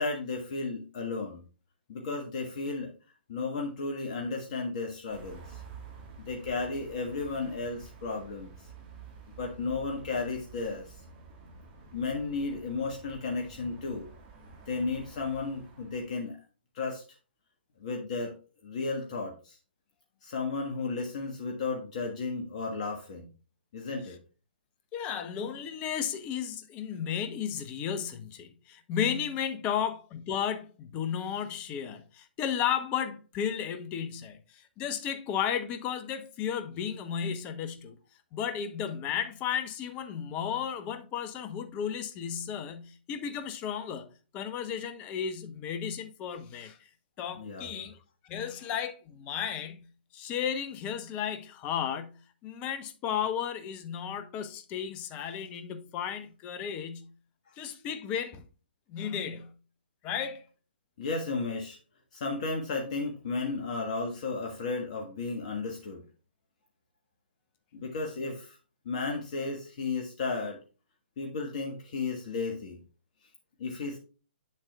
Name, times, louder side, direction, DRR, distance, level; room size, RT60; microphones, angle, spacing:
voice 1, 0.0-1.4 1.9-2.9 3.3-5.6 6.3-8.5 9.4-11.0 11.9-14.1 14.7-16.4 16.7-17.0 17.8-18.3 18.6-19.6 20.2-23.3 23.7-24.2 29.7-29.8 47.4-47.8 61.0-61.8 62.1-66.0 67.7-68.6 68.8-70.6 71.2-72.8 73.6-74.0, left 3 dB, 45° left, 1.5 m, -34 dB
sound 1, 5.1-16.2, right 4 dB, 30° right, 1.9 m, -50 dB
voice 2, 24.9-38.0 38.3-44.1 44.3-46.8 47.2-48.0 48.2-49.9 50.1-52.2 52.4-57.1 57.6-58.4 58.9-59.5 60.0-60.5, left 8 dB, 25° left, 0.9 m, -34 dB
8.1 x 7.4 x 2.3 m
figure-of-eight pair, 125°, 6 cm